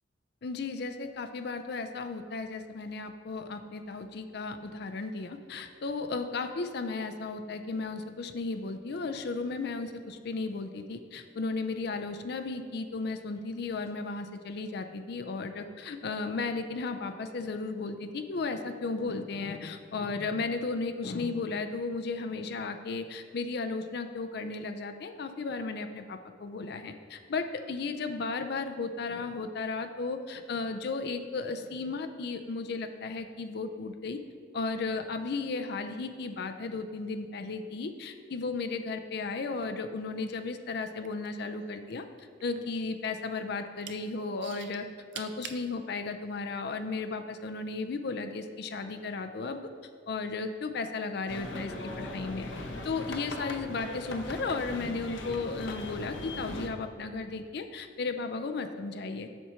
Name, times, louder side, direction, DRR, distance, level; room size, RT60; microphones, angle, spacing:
voice 1, 0.4-34.2 34.5-44.9 45.1-49.6 50.1-52.5 52.8-59.3, left 3 dB, 55° left, 8 dB, 0.4 m, -35 dB
sound 1, 40.8-41.9 42.2-43.3 43.6-44.0 44.4-45.6 46.3-46.4, right 8 dB, 65° right, 0.6 m, -44 dB
sound 2, 51.3-56.7, left 1 dB, 80° left, 0.9 m, -39 dB
7.5 x 6.8 x 4.4 m, 2.1 s
head